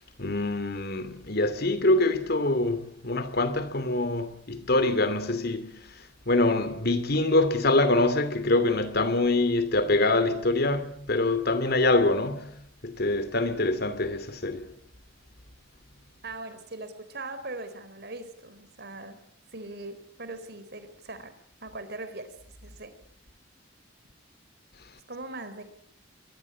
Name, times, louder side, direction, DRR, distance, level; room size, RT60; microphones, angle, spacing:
voice 1, 0.2-5.9 6.3-12.5 12.8-14.7, left 2 dB, 55° left, 2.7 m, -25 dB
voice 2, 16.2-19.2 19.5-21.3 21.6-22.3 22.6-22.9 25.1-25.6, right 2 dB, 55° right, 4.3 m, -40 dB
23.5 x 21.5 x 8.6 m
head